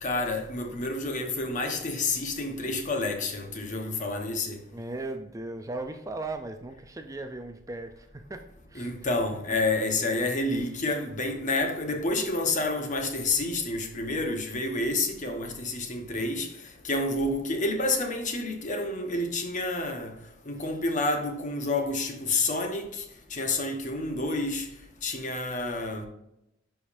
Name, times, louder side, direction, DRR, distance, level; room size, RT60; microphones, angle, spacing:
voice 1, 0.0-4.6 8.7-16.5 16.8-20.1 20.4-23.0 23.3-24.7 25.0-26.1, left 2 dB, 40° left, 1.1 m, -29 dB
voice 2, 4.7-8.9 10.6-10.7 20.6-20.7, right 2 dB, 15° right, 0.4 m, -38 dB
10.5 x 5.0 x 2.6 m
head